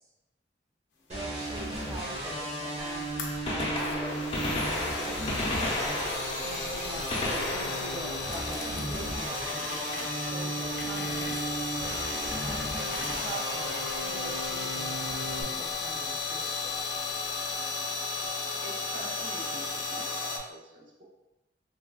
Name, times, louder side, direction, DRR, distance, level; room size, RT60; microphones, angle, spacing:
voice 1, 1.1-3.0 3.3-5.9 6.4-11.5 12.1-17.1, right 2 dB, 20° right, -1 dB, 0.3 m, -44 dB
sound 1, 1.1-15.4, right 1 dB, 40° right, 1.1 m, -35 dB
sound 2, 1.6-20.4, left 3 dB, 85° left, 0.5 m, -35 dB
Gunshot gunfire, 2.8-2.9 3.3-9.2 11.1-11.3 12.3-12.4 14.0-14.1 15.4-15.5 15.7-15.8, left 1 dB, 35° left, 0.7 m, -33 dB
voice 2, 18.6-21.0, right 1 dB, 85° right, -2 dB, 0.8 m, -46 dB
3.6 x 2.3 x 2.3 m, 0.97 s
head